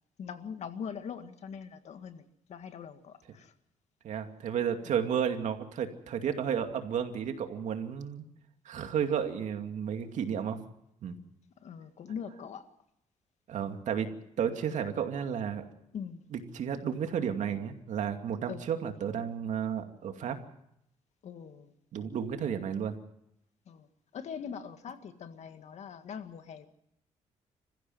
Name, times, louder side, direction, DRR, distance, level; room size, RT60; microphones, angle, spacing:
voice 1, 0.2-3.5 4.9-5.0 11.6-12.7 15.9-16.2 18.5-18.7 21.2-21.7 23.7-23.9 24.1-26.7, left 7 dB, 65° left, 8 dB, 1.9 m, -42 dB
voice 2, 4.0-8.2 8.6-10.6 11.0-11.1 13.5-14.1 14.4-15.7 16.3-20.4 21.9-23.0, right 8 dB, 75° right, 6 dB, 2.4 m, -32 dB
26.5 x 15.5 x 7.9 m, 0.78 s
cardioid pair, 110°, 13 cm